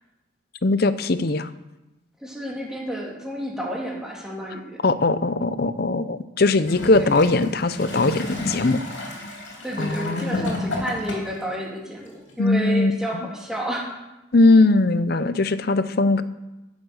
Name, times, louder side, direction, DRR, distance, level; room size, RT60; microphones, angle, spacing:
voice 1, 0.6-1.5 4.8-8.8 9.8-10.6 12.4-12.9 14.3-16.2, left 2 dB, 50° left, 13 dB, 0.6 m, -20 dB
voice 2, 2.2-4.8 7.0-7.1 9.6-14.0, equal, 5° right, -2 dB, 2.3 m, -31 dB
Gurgling / Toilet flush, 6.6-11.5 12.3-12.4, left 1 dB, 70° left, 3.6 m, -31 dB
15.5 x 7.4 x 6.5 m, 1.0 s
head